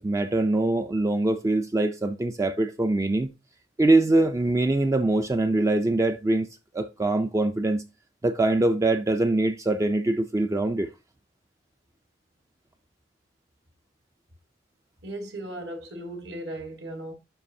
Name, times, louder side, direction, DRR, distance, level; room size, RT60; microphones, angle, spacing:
voice 1, 0.0-3.3 3.8-6.5 6.7-7.8 8.2-10.9, right 2 dB, 15° right, 0.3 m, -23 dB
voice 2, 15.0-17.1, right 1 dB, 65° right, 1.7 m, -36 dB
11.0 x 4.6 x 2.7 m
head